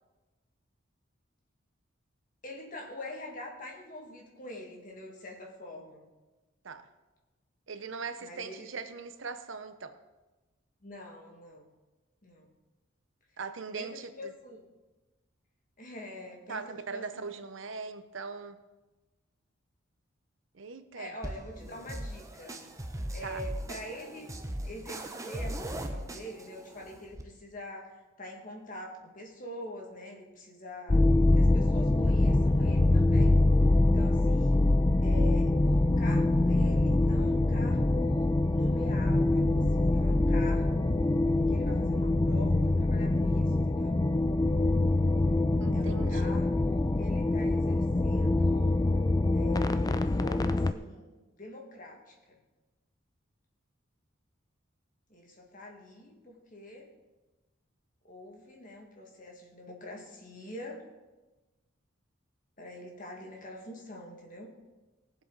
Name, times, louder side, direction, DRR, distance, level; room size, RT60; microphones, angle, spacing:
voice 1, 2.4-6.1 8.2-8.7 10.8-11.7 12.2-12.5 13.7-14.7 15.8-17.1 20.9-22.6 23.1-24.3 24.6-31.0 31.4-33.4 33.9-34.7 35.0-41.1 41.5-44.0 45.7-48.8 49.3-52.4 55.1-56.9 58.0-60.8 62.6-64.5, left 1 dB, 40° left, 1 dB, 2.0 m, -45 dB
voice 2, 7.7-9.9 13.4-14.3 16.5-18.6 20.5-21.1 23.2-23.4 45.6-46.4, right 4 dB, 65° right, 10 dB, 0.7 m, -40 dB
sound 1, 21.2-27.2, right 1 dB, 15° right, 0.7 m, -39 dB
sound 2, 30.9-50.7, left 2 dB, 20° left, 0.3 m, -24 dB
19.0 x 7.6 x 4.0 m, 1.1 s
head